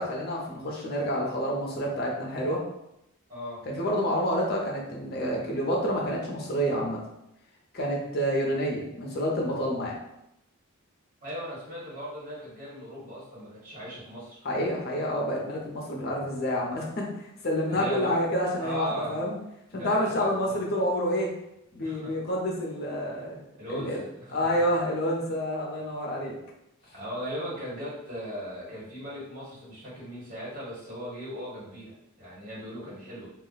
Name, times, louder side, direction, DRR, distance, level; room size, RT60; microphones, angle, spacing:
voice 1, 0.0-2.6 3.7-7.0 7.7-10.0 14.4-19.4 19.7-21.3 21.7-23.4 23.7-24.0 24.3-26.4, equal, 50° left, -2 dB, 0.6 m, -28 dB
voice 2, 3.3-3.6 11.2-14.4 17.7-18.2 18.6-19.2 19.7-20.8 21.8-22.1 23.6-24.5 26.9-33.3, equal, 40° right, -8 dB, 1.4 m, -38 dB
2.4 x 2.1 x 3.9 m, 0.84 s
head